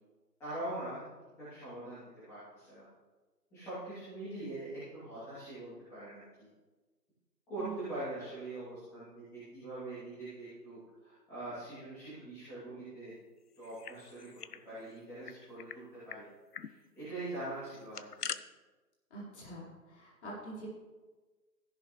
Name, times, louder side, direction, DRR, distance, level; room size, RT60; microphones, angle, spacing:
voice 1, 0.4-1.0 1.4-2.9 3.5-6.5 7.5-13.1 13.6-14.3 14.6-16.2 16.6-18.3, right 2 dB, 5° left, -14 dB, 2.7 m, -43 dB
sound 1, 13.6-14.6 14.9-15.0 15.3-15.8 16.1-16.2 16.5-16.7 17.7-18.4, left 7 dB, 65° left, 0.7 m, -43 dB
voice 2, 19.1-20.7, right 2 dB, 40° left, -5 dB, 4.4 m, -45 dB
15.0 x 10.5 x 3.2 m, 1.3 s
figure-of-eight pair, 160°, 50 cm